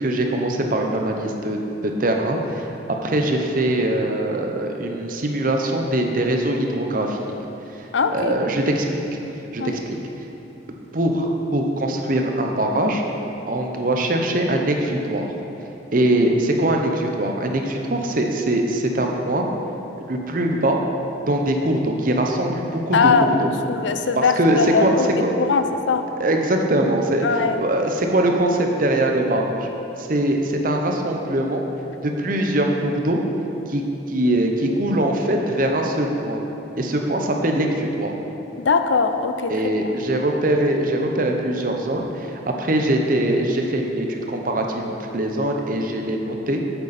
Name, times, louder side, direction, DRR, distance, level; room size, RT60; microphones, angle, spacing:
voice 1, 0.0-2.7 3.0-7.2 8.1-9.2 9.5-10.0 10.9-13.0 13.5-15.3 15.9-19.5 20.0-20.8 21.3-23.3 24.2-24.9 25.2-25.3 26.2-27.3 27.6-29.7 30.0-31.6 32.0-33.2 33.7-36.4 36.8-38.1 39.5-46.6, right 1 dB, 45° right, 2 dB, 0.8 m, -22 dB
voice 2, 7.9-8.4 9.6-9.8 22.9-25.1 25.4-26.1 27.2-27.6 38.6-39.9, left 5 dB, 75° left, 7 dB, 0.5 m, -21 dB
8.3 x 8.0 x 4.2 m, 3.0 s
head